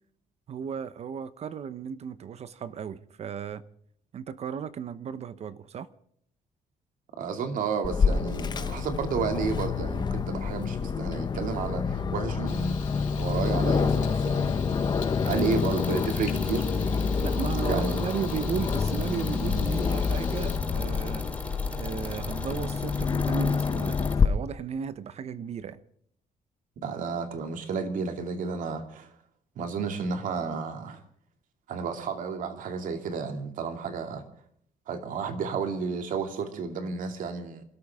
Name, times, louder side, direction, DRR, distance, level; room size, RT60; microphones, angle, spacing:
voice 1, 0.5-3.6 4.1-5.9 17.2-21.2 21.7-25.8, right 7 dB, 50° right, 0.9 m, -35 dB
voice 2, 7.2-14.6 15.2-16.6 17.7-18.0 26.8-29.1 29.6-31.0 31.7-34.2 34.9-37.6, right 5 dB, 70° right, 2.5 m, -32 dB
Aircraft, 7.8-24.2, left 5 dB, 30° left, 1.0 m, -27 dB
Frying (food), 12.5-20.6, left 9 dB, 65° left, 3.2 m, -46 dB
sound 1, 15.2-24.1, left 2 dB, 10° left, 4.2 m, -40 dB
27.5 x 13.5 x 3.6 m
cardioid pair, 140°, 14 cm